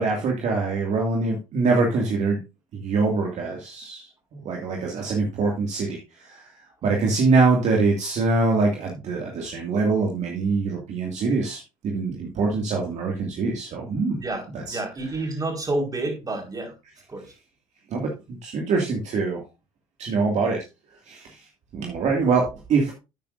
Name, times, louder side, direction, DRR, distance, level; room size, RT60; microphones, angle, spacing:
voice 1, 0.0-2.4 2.7-6.5 6.8-14.1 14.5-14.8 17.9-19.4 20.0-20.6 21.1-21.4 21.7-22.9, right 4 dB, 50° right, 0 dB, 2.3 m, -24 dB
voice 2, 14.1-16.7 17.1-17.3, right 2 dB, 25° right, 3 dB, 4.7 m, -29 dB
12.0 x 9.1 x 2.6 m, 0.27 s
hypercardioid pair, 65°, 15 cm